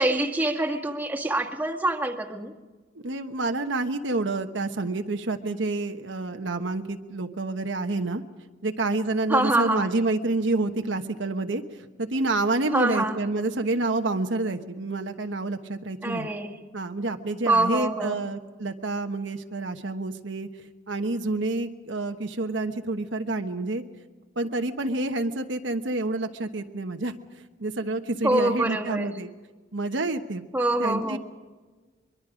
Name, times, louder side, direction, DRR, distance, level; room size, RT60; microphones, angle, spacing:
voice 1, 0.0-2.5 9.3-9.9 12.7-13.2 16.0-16.6 17.5-18.2 28.2-29.1 30.5-31.2, right 2 dB, 10° right, 0 dB, 1.8 m, -25 dB
voice 2, 2.9-8.2 8.6-16.3 16.7-20.5 20.9-23.8 24.4-27.1 27.6-29.3 29.7-30.4 30.8-31.2, right 2 dB, 70° right, 6 dB, 1.2 m, -28 dB
23.0 x 23.0 x 5.1 m, 1.3 s
head